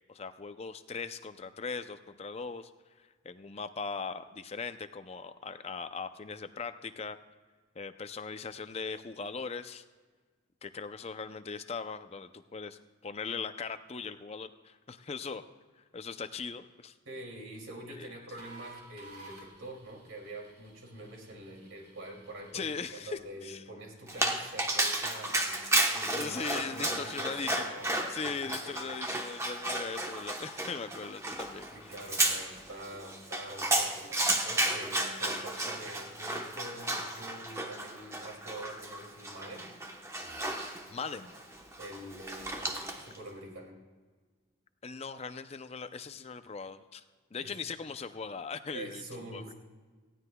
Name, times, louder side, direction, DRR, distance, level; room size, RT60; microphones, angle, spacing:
voice 1, 0.1-2.7 3.2-7.2 7.8-9.8 10.6-15.4 15.9-16.9 18.0-18.1 22.5-23.6 26.0-27.8 28.1-31.9 40.9-41.4 44.8-47.0 47.3-49.4, left 5 dB, 30° left, 10 dB, 0.5 m, -39 dB
voice 2, 17.1-28.8 31.7-39.8 41.8-43.8 47.3-47.5 48.7-49.5, right 1 dB, 75° right, 0 dB, 2.6 m, -46 dB
sound 1, 18.4-23.2, right 2 dB, 45° right, 2.9 m, -54 dB
Dog, 24.1-43.2, right 1 dB, 15° right, 1.0 m, -33 dB
19.0 x 15.0 x 2.3 m, 1.4 s
head